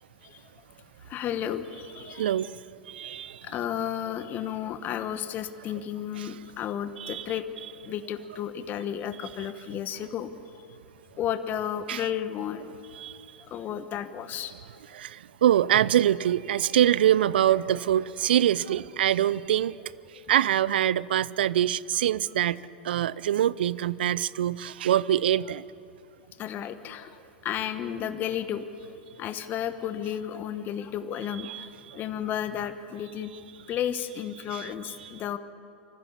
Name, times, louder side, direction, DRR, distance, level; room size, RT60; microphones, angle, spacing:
voice 1, 1.0-2.4 3.4-7.4 7.9-10.3 11.2-12.7 13.5-14.5 22.9-23.0 26.4-28.7 29.2-33.3 33.7-35.4, left 10 dB, 35° left, 1.1 m, -33 dB
voice 2, 2.1-2.5 2.9-3.4 6.2-6.3 7.0-7.3 11.9-12.0 12.9-13.1 14.9-19.8 20.3-22.6 22.8-25.6 31.4-32.0 34.5-34.7 35.0-35.1, right 11 dB, 65° right, 0.5 m, -24 dB
25.0 x 14.5 x 7.2 m
figure-of-eight pair, 100°, 6 cm